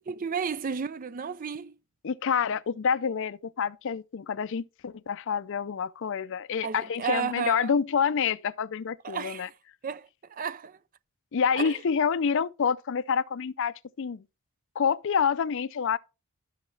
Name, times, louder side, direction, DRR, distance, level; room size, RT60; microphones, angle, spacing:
voice 1, 0.1-1.7 6.6-7.7 9.0-9.5 9.8-10.8 11.6-11.7, right 6 dB, 40° right, 0.4 m, -33 dB
voice 2, 2.0-9.5 11.3-14.2 14.8-16.0, left 6 dB, 55° left, 0.5 m, -27 dB
12.5 x 6.5 x 3.3 m
head